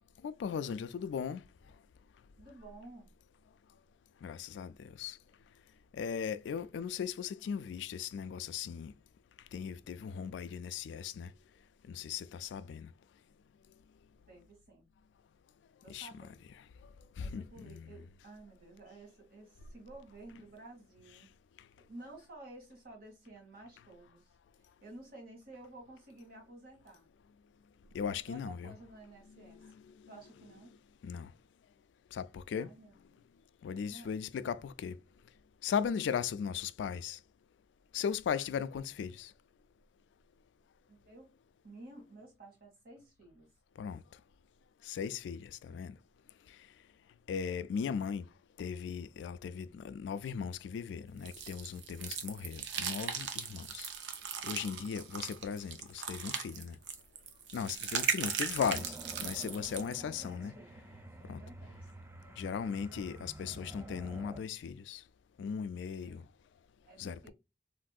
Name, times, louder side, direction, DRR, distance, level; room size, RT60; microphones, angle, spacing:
voice 1, 0.2-1.4 4.2-5.2 5.9-8.9 9.5-11.3 11.9-12.9 15.9-16.1 17.2-17.9 27.9-28.7 29.3-30.1 31.0-31.3 32.1-32.7 33.6-35.0 35.6-37.2 37.9-39.3 43.8-44.0 44.8-46.0 47.3-48.3 48.6-53.9 54.4-56.8 57.5-60.5 61.3-61.4 62.4-65.0 65.4-66.2 67.0-67.3, left 7 dB, 80° left, 0.3 m, -38 dB
voice 2, 2.4-3.1 6.5-6.7 14.3-14.8 15.8-16.4 17.2-21.3 21.9-27.1 28.1-29.7 30.1-30.7 32.5-33.2 33.9-34.2 40.9-41.3 41.6-43.5 57.9-58.1 59.8-60.7 61.3-61.9 62.5-63.0 66.1-66.2 66.8-67.3, right 2 dB, 55° right, 1.6 m, -53 dB
sound 1, 51.3-60.0, right 7 dB, 90° right, 0.6 m, -38 dB
sound 2, 58.6-64.4, right 1 dB, 15° right, 0.3 m, -49 dB
3.6 x 2.5 x 2.3 m
head